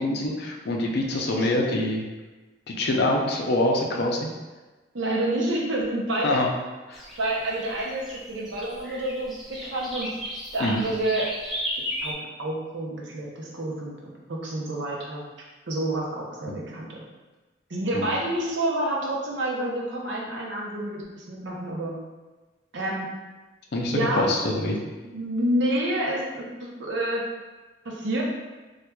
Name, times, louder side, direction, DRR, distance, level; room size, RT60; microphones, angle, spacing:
voice 1, 0.0-2.0 2.7-4.3 6.2-6.5 6.9-7.0 10.6-10.8 16.5-16.6 17.9-18.1 23.7-24.8, left 1 dB, 55° left, 0 dB, 0.4 m, -25 dB
voice 2, 1.1-1.5 4.9-6.4 7.2-10.1 10.5-11.3 12.0-15.2 15.7-17.0 17.7-21.9 22.7-23.1 23.9-24.3 25.0-27.2 27.8-28.2, right 1 dB, 65° right, -3 dB, 0.7 m, -28 dB
sound 1, 6.9-12.1, equal, ahead, 0.5 m, -35 dB
4.4 x 2.3 x 2.2 m, 1.2 s
head